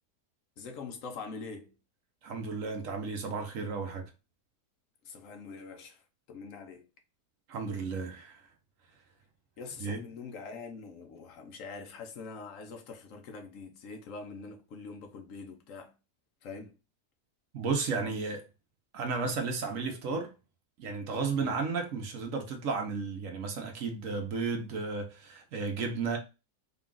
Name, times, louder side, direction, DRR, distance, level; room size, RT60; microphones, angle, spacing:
voice 1, 0.6-1.7 5.0-6.9 9.6-15.9 16.4-16.8 21.4-21.7, left 4 dB, 60° left, 1.1 m, -44 dB
voice 2, 2.2-4.1 7.5-8.4 9.8-10.0 17.5-18.4 18.9-20.3 20.8-26.2, right 4 dB, 60° right, 1.0 m, -33 dB
4.0 x 2.4 x 3.7 m
omnidirectional pair, 1.7 m